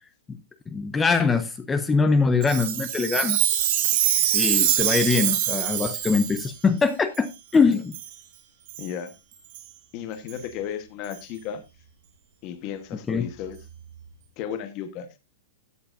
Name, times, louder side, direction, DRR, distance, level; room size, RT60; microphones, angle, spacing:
voice 1, 0.7-3.4 4.3-8.0 13.1-13.3, left 4 dB, 10° left, 0.5 m, -23 dB
Chime, 2.4-6.5 7.1-7.2 7.9-8.1 8.7-8.9 9.5-9.6 10.3-10.4 11.1-11.2, right 12 dB, 35° right, 1.8 m, -24 dB
voice 2, 8.8-9.1 9.9-11.6 12.4-13.6 14.4-15.1, left 8 dB, 25° left, 1.0 m, -34 dB
13.0 x 8.7 x 2.5 m
hypercardioid pair, 175°, 0 cm